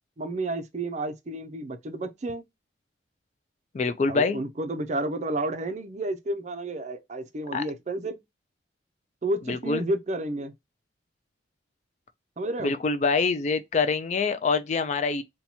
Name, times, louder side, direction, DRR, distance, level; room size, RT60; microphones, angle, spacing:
voice 1, 0.2-2.4 4.1-8.2 9.2-10.5 12.4-12.7, right 1 dB, 40° right, 0.4 m, -31 dB
voice 2, 3.7-4.4 7.5-7.6 9.5-9.9 12.6-15.2, left 4 dB, 35° left, 0.3 m, -25 dB
2.8 x 2.2 x 4.1 m
head